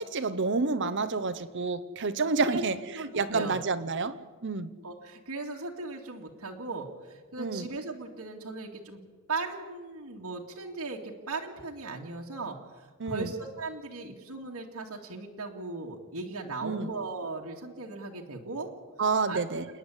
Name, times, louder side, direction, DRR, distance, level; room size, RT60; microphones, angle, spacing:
voice 1, 0.0-2.7 3.1-4.7 7.4-7.7 13.0-13.3 16.6-16.9 19.0-19.7, right 4 dB, 55° right, 0.9 m, -29 dB
voice 2, 2.9-3.6 4.8-9.0 9.3-18.7 19.3-19.4, right 3 dB, 75° right, 2.2 m, -37 dB
28.5 x 9.8 x 10.0 m
head